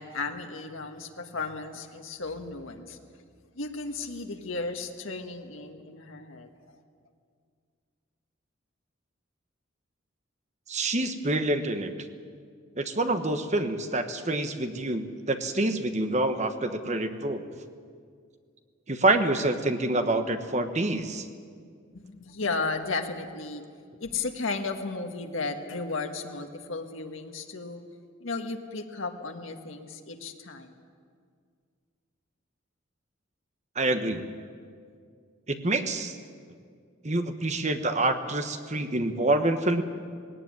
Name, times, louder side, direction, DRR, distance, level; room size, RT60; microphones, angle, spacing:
voice 1, 0.0-3.0 3.5-6.5 21.9-23.6 24.0-27.8 28.2-30.7, left 3 dB, 80° left, 4 dB, 1.6 m, -34 dB
voice 2, 10.7-11.9 12.8-17.4 18.9-21.2 33.7-34.2 35.5-36.2 37.0-39.8, right 2 dB, 35° right, 8 dB, 1.2 m, -27 dB
18.5 x 17.5 x 9.6 m, 2.1 s
head